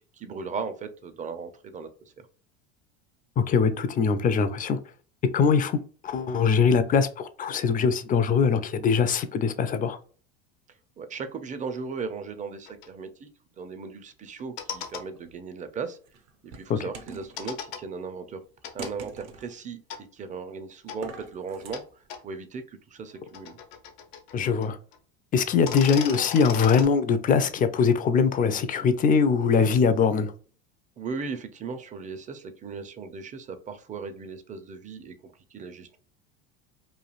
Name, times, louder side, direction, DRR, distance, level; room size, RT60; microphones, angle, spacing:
voice 1, 0.1-1.9 2.2-2.3 11.0-13.3 13.6-16.0 16.4-18.4 18.7-19.8 20.1-23.6 31.0-36.0, right 5 dB, 25° right, 0.5 m, -37 dB
voice 2, 3.4-4.8 5.3-10.0 16.7-16.8 24.3-24.8 25.3-30.3, left 5 dB, 30° left, 0.4 m, -22 dB
sound 1, 12.7-12.9 14.4-15.0 17.4-17.8 18.6-18.9 19.9-20.0 20.9-21.0 21.7-21.8 22.1-22.2 23.1-24.7 24.9-25.0 25.5-26.9, left 8 dB, 75° left, 0.8 m, -36 dB
sound 2, 14.8-15.4 16.1-17.5 18.8-19.6 20.9-21.7, right 5 dB, 55° right, 0.7 m, -43 dB
3.1 x 2.4 x 2.4 m
supercardioid pair, 95°, 30 cm